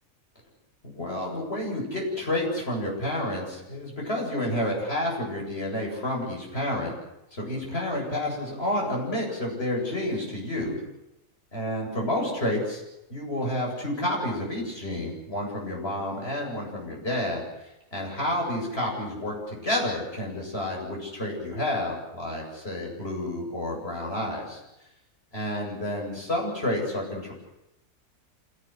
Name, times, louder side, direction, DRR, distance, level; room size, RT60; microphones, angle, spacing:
voice 1, 0.8-6.9 7.3-10.8 11.5-12.8 13.1-24.6 25.3-27.3, left 1 dB, 45° left, -2 dB, 8.4 m, -30 dB
27.0 x 18.5 x 7.9 m, 0.89 s
omnidirectional pair, 1.5 m